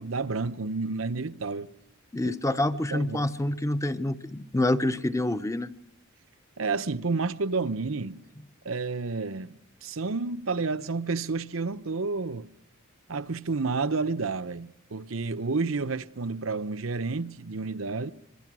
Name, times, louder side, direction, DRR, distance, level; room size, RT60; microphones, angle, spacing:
voice 1, 0.0-1.7 2.2-2.3 2.9-3.2 6.6-8.2 8.6-12.5 13.1-18.1, right 4 dB, 75° right, 0.9 m, -30 dB
voice 2, 2.1-5.7, left 1 dB, 15° left, 0.8 m, -27 dB
26.0 x 22.5 x 6.2 m
head